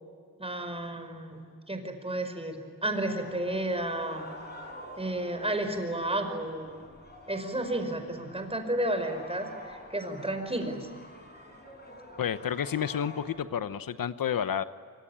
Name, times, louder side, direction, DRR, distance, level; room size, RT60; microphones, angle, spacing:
voice 1, 0.4-4.3 5.0-6.7 7.3-10.9, right 1 dB, 15° right, 6 dB, 5.1 m, -32 dB
sound 1, 2.9-13.3, left 1 dB, 30° left, 6.7 m, -48 dB
voice 2, 12.2-14.6, left 8 dB, 80° left, 12 dB, 0.9 m, -30 dB
26.0 x 25.5 x 8.8 m, 2.2 s
wide cardioid pair, 105°, 34 cm